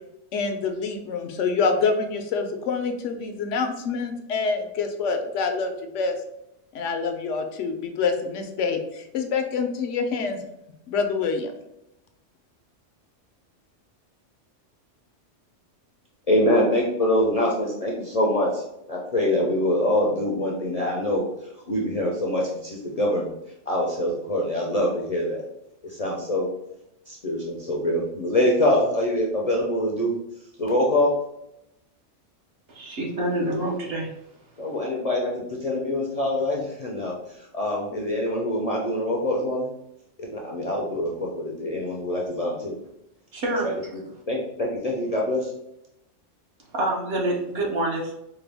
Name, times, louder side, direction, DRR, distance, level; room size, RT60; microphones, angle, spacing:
voice 1, 0.3-6.2 6.7-10.4 10.9-11.5, left 4 dB, 75° left, 6 dB, 0.9 m, -26 dB
voice 2, 16.3-23.3 23.7-25.4 25.8-26.5 27.1-30.2 30.6-31.1 34.6-39.7 40.2-42.8 43.6-43.7 44.3-45.5, left 1 dB, 45° left, -2 dB, 0.5 m, -24 dB
voice 3, 32.7-34.1 43.3-43.7 46.7-48.1, right 1 dB, 55° right, -1 dB, 1.0 m, -26 dB
4.5 x 2.2 x 3.3 m, 0.84 s
omnidirectional pair, 1.3 m